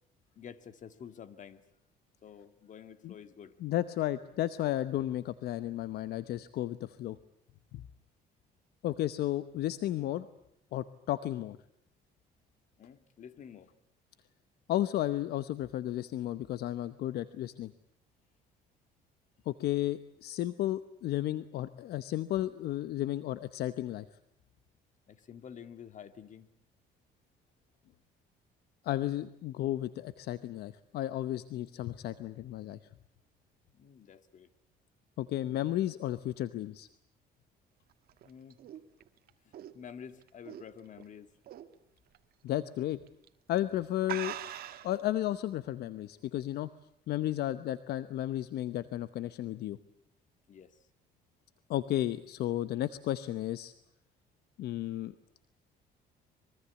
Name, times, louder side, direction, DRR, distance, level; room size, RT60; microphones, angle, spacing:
voice 1, 0.4-1.6 2.2-3.5 12.8-13.7 25.1-26.5 33.7-34.5 38.2-38.6 39.4-41.3 50.5-50.8, left 8 dB, 50° left, 11 dB, 2.0 m, -49 dB
voice 2, 3.6-7.2 7.7-7.8 8.8-10.3 10.7-11.6 14.7-17.7 19.5-24.1 28.8-32.8 35.2-36.9 42.4-43.0 43.5-44.4 44.8-46.7 47.1-49.8 51.7-53.7 54.6-55.1, left 13 dB, 70° left, 13 dB, 0.9 m, -33 dB
sound 1, 37.9-41.0 41.5-41.8 42.1-42.2 43.1-43.3 43.6-43.7 44.1-45.0, right 12 dB, 65° right, 1.8 m, -42 dB
25.0 x 23.0 x 8.3 m, 0.71 s
cardioid pair, 110°, 17 cm